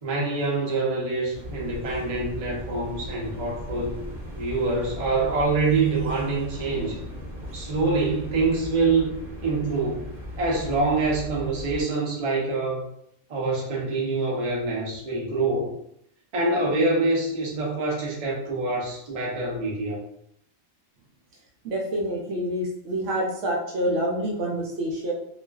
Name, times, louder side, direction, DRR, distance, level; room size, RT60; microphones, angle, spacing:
voice 1, 0.0-4.0 4.3-7.0 7.5-9.1 9.4-10.1 10.4-12.8 13.3-15.7 16.3-20.0, right 3 dB, 40° right, -4 dB, 0.5 m, -25 dB
sound 1, 1.3-11.8, equal, 20° left, 0.9 m, -38 dB
voice 2, 21.6-25.1, right 1 dB, 70° right, -1 dB, 0.9 m, -27 dB
2.4 x 2.3 x 2.3 m, 0.74 s
omnidirectional pair, 1.4 m